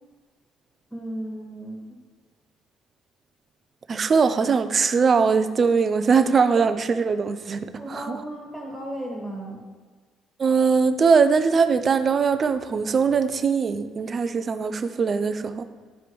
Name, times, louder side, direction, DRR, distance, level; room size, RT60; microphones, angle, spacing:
voice 1, 0.9-2.0 7.7-9.6, right 1 dB, 10° left, -3 dB, 1.6 m, -35 dB
voice 2, 3.9-8.2 10.4-15.7, right 5 dB, 30° right, 10 dB, 0.4 m, -21 dB
11.5 x 5.0 x 3.1 m, 1.5 s
cardioid pair, 150°, 0 cm